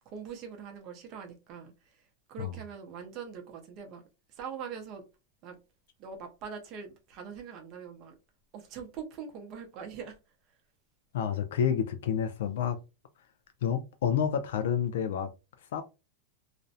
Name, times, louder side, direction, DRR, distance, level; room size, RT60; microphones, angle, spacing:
voice 1, 0.1-4.0 4.3-5.0 5.4-5.6 6.0-8.1 8.5-10.2, right 6 dB, 40° right, 0.5 m, -43 dB
voice 2, 11.1-12.8 13.6-15.3 15.7-15.8, left 8 dB, 80° left, 0.3 m, -29 dB
2.4 x 2.0 x 2.6 m
supercardioid pair, 150°, 0 cm